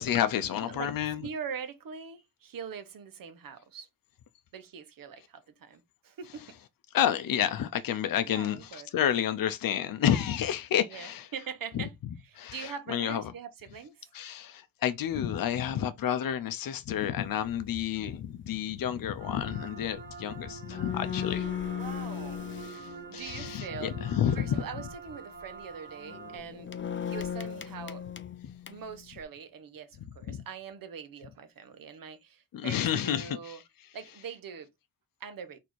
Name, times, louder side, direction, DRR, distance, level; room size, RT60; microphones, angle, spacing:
voice 1, 0.0-1.3 6.9-11.3 11.7-11.8 12.4-13.3 14.1-21.5 22.6-24.6 30.3-30.4 32.5-33.6, left 10 dB, 80° left, 0.6 m, -30 dB
voice 2, 0.6-1.0 1.2-3.9 4.5-6.6 8.3-8.9 10.9-11.9 12.2-14.0 21.3-22.4 23.1-23.9 24.3-26.7 27.1-28.0 28.7-33.6 33.9-34.7 35.2-35.6, right 7 dB, 75° right, 0.9 m, -42 dB
sound 1, 17.2-17.5 18.0-18.3 20.2-20.3 20.5-23.8 24.7-25.0 25.4-25.6 26.0-29.2, left 9 dB, 35° left, 0.5 m, -37 dB
sound 2, 19.2-26.4, right 6 dB, 35° right, 1.9 m, -46 dB
4.2 x 2.8 x 4.5 m
wide cardioid pair, 105°, 34 cm